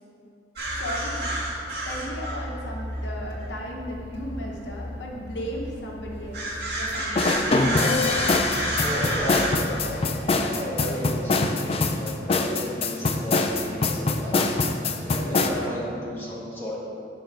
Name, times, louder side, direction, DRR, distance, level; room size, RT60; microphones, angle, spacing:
sound 1, 0.6-9.5, right 1 dB, 60° right, 1.9 m, -31 dB
voice 1, 0.7-6.5 6.8-7.6, equal, 75° left, -2 dB, 1.0 m, -36 dB
sound 2, 7.2-15.5, left 3 dB, 30° left, 0.4 m, -23 dB
voice 2, 8.4-14.5 15.1-16.8, equal, 15° left, -8 dB, 1.6 m, -33 dB
8.5 x 3.8 x 5.8 m, 2.5 s
head